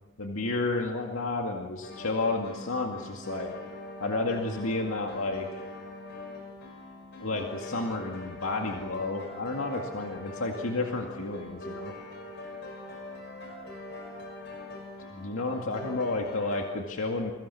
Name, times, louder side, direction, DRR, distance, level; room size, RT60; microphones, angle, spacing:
voice 1, 0.2-3.5 4.0-5.6 7.2-11.9 15.1-17.3, left 2 dB, 70° left, 1 dB, 2.2 m, -31 dB
sound 1, 1.8-16.7, left 2 dB, 50° left, 5.7 m, -43 dB
29.5 x 23.0 x 7.1 m, 1.2 s
head